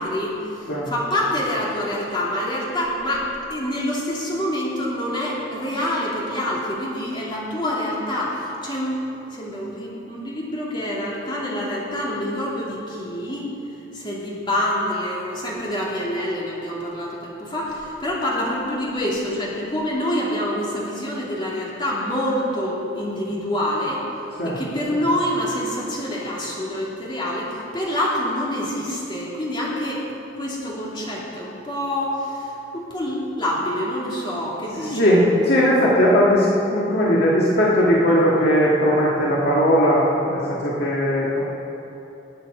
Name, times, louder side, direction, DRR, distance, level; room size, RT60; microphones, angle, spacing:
voice 1, 0.0-9.0 9.3-13.5 13.9-24.0 24.4-30.1 30.3-35.2, left 1 dB, 25° left, -5 dB, 2.7 m, -26 dB
voice 2, 34.9-41.4, equal, 60° left, -5 dB, 1.7 m, -18 dB
19.5 x 8.5 x 5.0 m, 3.0 s
head